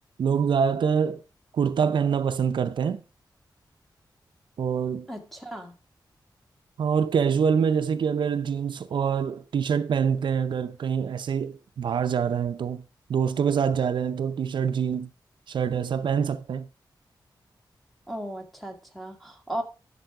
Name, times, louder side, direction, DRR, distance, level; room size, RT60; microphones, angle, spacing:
voice 1, 0.2-1.2 1.5-3.0 4.6-5.1 6.8-12.8 13.1-15.1 15.5-16.7, right 7 dB, 80° right, 0.6 m, -25 dB
voice 2, 5.1-5.7 18.1-19.6, right 1 dB, ahead, 1.6 m, -36 dB
10.5 x 6.8 x 4.7 m
wide cardioid pair, 180°, 8 cm